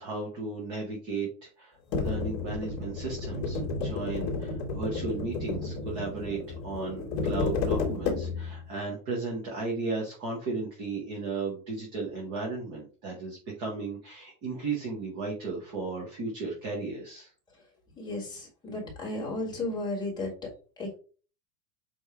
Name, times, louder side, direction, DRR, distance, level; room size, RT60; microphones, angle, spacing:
voice 1, 0.0-17.3, right 3 dB, 10° right, -1 dB, 0.4 m, -35 dB
sound 1, 1.9-8.6, left 4 dB, 35° left, 2.4 m, -32 dB
voice 2, 18.0-20.3 20.8-20.9, left 2 dB, 10° left, -3 dB, 2.0 m, -34 dB
8.0 x 2.7 x 4.6 m, 0.38 s
supercardioid pair, 165°, 50 cm